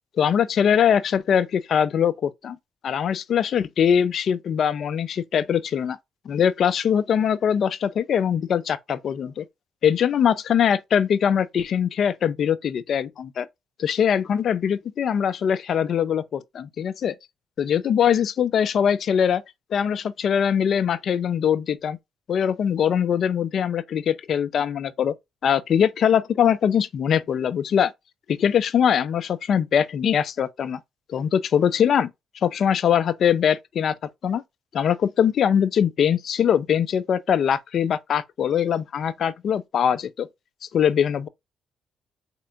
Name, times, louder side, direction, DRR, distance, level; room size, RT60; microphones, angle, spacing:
voice 1, 0.2-2.6 2.8-6.0 6.3-9.4 9.8-13.5 13.8-17.1 17.6-19.4 19.7-22.0 22.3-25.1 25.4-27.9 28.3-30.8 31.1-32.1 32.4-33.9 34.2-34.4 34.7-40.3 40.7-41.3, left 8 dB, 60° left, 0.4 m, -22 dB
4.3 x 2.8 x 2.4 m
cardioid pair, 90°, 0 cm